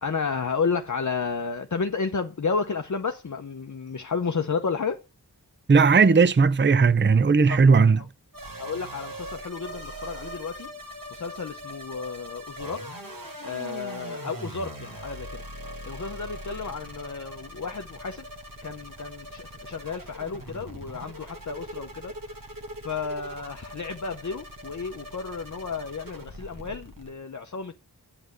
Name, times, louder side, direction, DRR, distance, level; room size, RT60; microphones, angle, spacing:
voice 1, 0.0-5.0 8.6-10.7 11.1-12.8 13.4-15.3 15.8-18.2 18.6-22.1 22.8-27.7, left 5 dB, 50° left, 0.7 m, -32 dB
voice 2, 5.7-8.0, right 5 dB, 30° right, 0.6 m, -17 dB
sound 1, 8.3-27.1, right 1 dB, 55° right, 1.9 m, -41 dB
8.6 x 7.9 x 8.2 m
wide cardioid pair, 55°, 39 cm